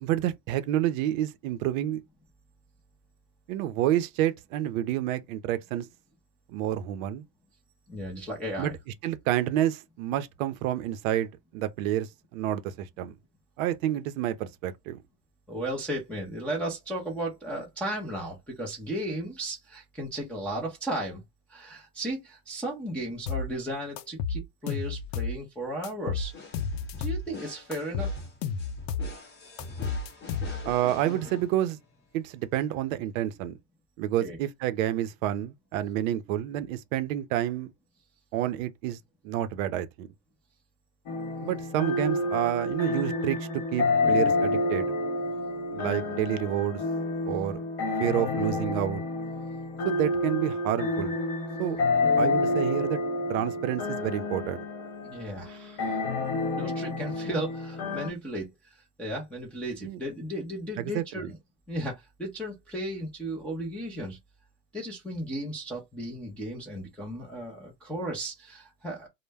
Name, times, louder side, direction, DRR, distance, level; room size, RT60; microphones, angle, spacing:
voice 1, 0.0-2.0 3.5-5.9 6.5-7.2 8.6-8.7 9.0-13.1 13.6-15.0 30.7-31.8 32.1-33.6 34.0-37.7 38.3-39.0 39.2-40.1 41.4-44.9 45.7-46.8 47.3-47.6 48.0-49.0 49.8-51.2 51.6-51.8 52.2-53.0 53.3-54.7 59.8-60.0 60.9-61.3, right 12 dB, 55° right, 0.5 m, -29 dB
voice 2, 7.9-8.8 15.5-21.2 21.5-26.3 27.0-28.1 34.2-34.4 55.0-56.0 56.6-61.4 61.7-64.2 64.7-69.1, right 1 dB, 5° left, 0.3 m, -35 dB
sound 1, 23.3-23.5 24.0-25.4 25.8-27.3 27.7-29.1 29.6-30.8, left 5 dB, 75° left, 0.6 m, -32 dB
sound 2, 26.2-32.0, left 3 dB, 20° left, 0.9 m, -45 dB
sound 3, 41.1-58.1, left 2 dB, 55° left, 1.0 m, -29 dB
2.1 x 2.1 x 3.3 m
supercardioid pair, 120°, 48 cm